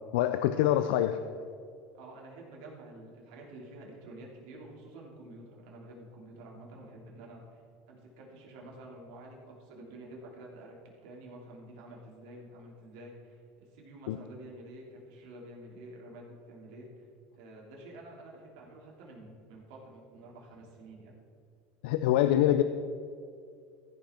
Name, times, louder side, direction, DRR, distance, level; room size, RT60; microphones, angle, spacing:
voice 1, 0.1-1.2 14.1-14.2 21.8-22.6, left 12 dB, 80° left, 9 dB, 0.5 m, -25 dB
voice 2, 1.9-7.6 7.9-10.8 11.0-17.1 17.3-21.2, right 1 dB, 75° right, -2 dB, 2.9 m, -49 dB
14.5 x 5.9 x 4.4 m, 2.3 s
supercardioid pair, 110°, 5 cm